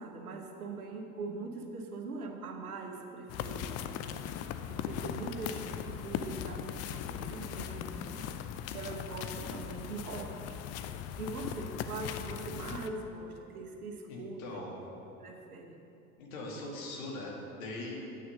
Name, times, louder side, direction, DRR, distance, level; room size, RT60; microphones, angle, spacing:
voice 1, 0.0-3.9 4.7-8.3 8.7-10.6 11.2-14.7 15.2-15.8, right 3 dB, 85° right, 3 dB, 1.2 m, -42 dB
sound 1, 3.3-12.9, left 9 dB, 35° left, 0.5 m, -39 dB
voice 2, 14.1-14.7 16.2-18.2, left 2 dB, 65° left, -2 dB, 2.3 m, -41 dB
8.7 x 6.8 x 6.5 m, 2.8 s
figure-of-eight pair, 75°, 43 cm